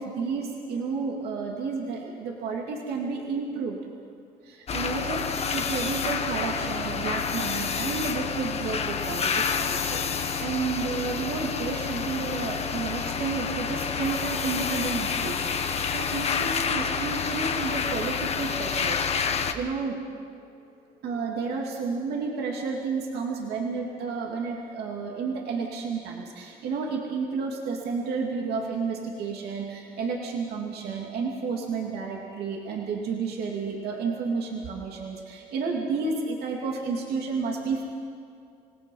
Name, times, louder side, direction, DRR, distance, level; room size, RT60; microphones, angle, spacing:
voice 1, 0.0-3.8 4.4-20.0 21.0-37.8, right 4 dB, 70° right, 0 dB, 2.8 m, -31 dB
sound 1, 4.7-19.5, left 6 dB, 40° left, 1.3 m, -29 dB
28.0 x 18.0 x 5.6 m, 2.3 s
cardioid pair, 110°, 17 cm